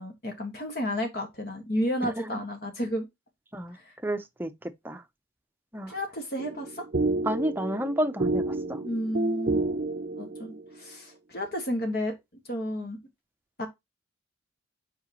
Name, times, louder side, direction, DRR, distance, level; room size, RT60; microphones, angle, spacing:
voice 1, 0.0-3.1 3.7-3.8 5.9-6.8 8.8-9.6 10.2-12.1 12.5-13.0 13.6-13.7, equal, 55° left, 1.7 m, -32 dB
voice 2, 2.0-2.4 3.5-3.8 4.0-4.5 4.8-5.0 5.7-5.9 7.3-8.8, equal, 10° right, 0.7 m, -30 dB
sound 1, 6.4-10.7, right 2 dB, 50° right, 0.6 m, -30 dB
7.8 x 4.8 x 3.0 m
head